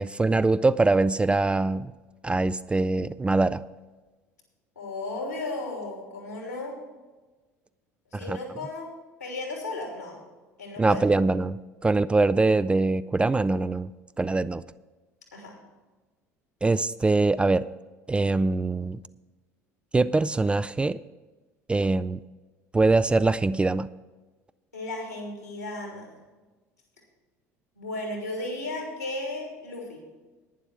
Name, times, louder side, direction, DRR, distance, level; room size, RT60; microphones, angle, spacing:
voice 1, 0.0-1.9 2.2-3.6 8.3-8.4 10.8-13.9 14.2-14.6 16.6-17.7 18.1-19.0 19.9-21.0 21.7-22.2 22.7-23.9, right 3 dB, 15° right, 15 dB, 0.3 m, -23 dB
voice 2, 4.7-6.7 8.1-8.9 9.2-10.2 10.6-11.0 15.3-15.6 24.7-26.1 27.8-30.0, left 2 dB, 85° left, 0 dB, 3.0 m, -35 dB
11.5 x 9.9 x 4.7 m, 1.2 s
figure-of-eight pair, 60°, 8 cm